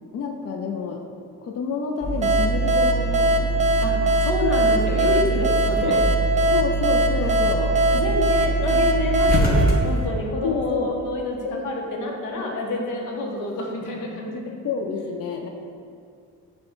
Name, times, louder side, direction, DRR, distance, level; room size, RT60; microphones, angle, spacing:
voice 1, 0.1-1.0 1.4-3.6 5.2-5.5 5.8-6.0 6.5-7.7 10.4-11.0 11.4-11.7 12.3-12.6 14.6-15.5, left 5 dB, 55° left, 2 dB, 0.4 m, -29 dB
sound 1, 2.0-10.1, right 2 dB, 30° left, 0.8 m, -24 dB
sound 2, 2.2-10.7, right 2 dB, 25° right, 0.4 m, -22 dB
voice 2, 3.8-6.0 7.9-11.4 11.6-14.6, left 1 dB, 85° left, 0 dB, 0.8 m, -28 dB
5.4 x 2.2 x 4.4 m, 2.4 s
cardioid pair, 90°, 30 cm